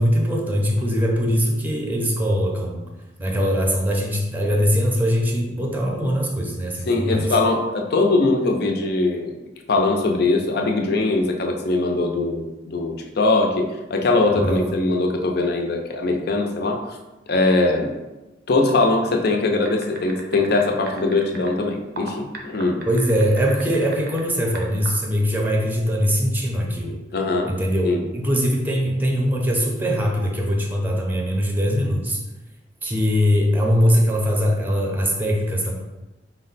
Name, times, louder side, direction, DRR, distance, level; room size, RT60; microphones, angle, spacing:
voice 1, 0.0-2.9 3.2-7.3 14.3-14.7 22.9-27.0 27.4-32.2 32.8-35.7, equal, 10° right, -1 dB, 0.6 m, -21 dB
voice 2, 6.9-9.4 9.7-17.0 17.3-17.9 18.5-22.8 27.1-27.6 27.8-28.0, left 2 dB, 60° left, 3 dB, 0.5 m, -21 dB
sound 1, 19.6-21.5 22.0-24.2 24.5-24.9, right 3 dB, 55° right, 0.6 m, -36 dB
4.6 x 2.1 x 3.9 m, 1.1 s
head